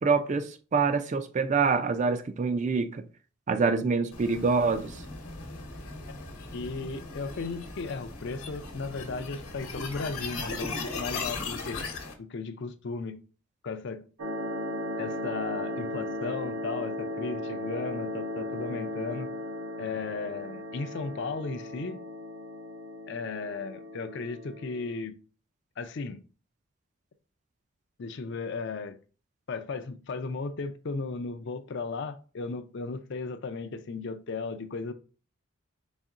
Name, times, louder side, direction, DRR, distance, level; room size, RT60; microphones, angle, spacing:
voice 1, 0.0-3.1 3.5-5.0, right 4 dB, 35° right, 0.3 m, -26 dB
sound 1, 4.1-12.1, left 3 dB, 80° left, 1.0 m, -38 dB
voice 2, 6.5-11.9 12.2-13.2 13.6-14.0 15.0-19.3 19.8-22.0 23.1-25.2 25.8-26.2 28.0-29.0 29.5-34.9, left 4 dB, 55° left, 0.4 m, -35 dB
sound 2, 14.2-25.0, left 1 dB, 85° right, 0.6 m, -36 dB
4.1 x 3.5 x 2.4 m
head